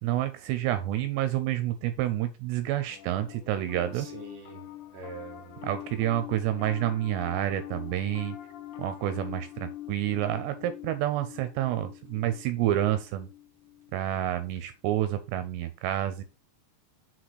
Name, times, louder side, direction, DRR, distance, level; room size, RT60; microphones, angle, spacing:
voice 1, 0.0-4.1 5.6-8.4 8.8-13.3 13.9-16.2, right 12 dB, 80° right, 2.8 m, -29 dB
Piano, 2.9-14.4, left 13 dB, 85° left, 2.9 m, -44 dB
voice 2, 3.9-4.6 4.9-6.0, right 3 dB, 60° right, 1.3 m, -45 dB
6.3 x 4.2 x 4.7 m
omnidirectional pair, 5.1 m